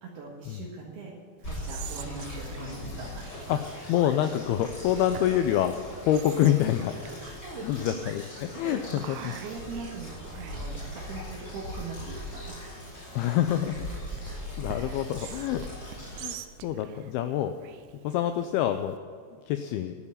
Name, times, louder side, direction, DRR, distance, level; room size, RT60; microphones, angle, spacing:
voice 1, 0.0-3.4 6.9-7.2 7.4-8.0 8.6-12.7, right 3 dB, 70° right, -3 dB, 3.5 m, -41 dB
sound 1, 1.4-16.3, equal, 30° left, 4.9 m, -40 dB
Whispering, 1.4-19.0, right 11 dB, 85° right, 2.1 m, -48 dB
sound 2, 3.8-4.2 6.8-7.0 7.5-7.6 8.0-8.6 11.4-11.7 12.1-12.3, right 3 dB, 50° right, 4.0 m, -52 dB
voice 2, 3.9-6.9 7.6-9.3 13.1-13.9 14.6-15.6 16.2-16.4 16.6-17.6 18.0-19.0 19.5-19.9, left 11 dB, 80° left, 8 dB, 2.3 m, -26 dB
12.5 x 7.1 x 9.7 m, 2.1 s
omnidirectional pair, 5.0 m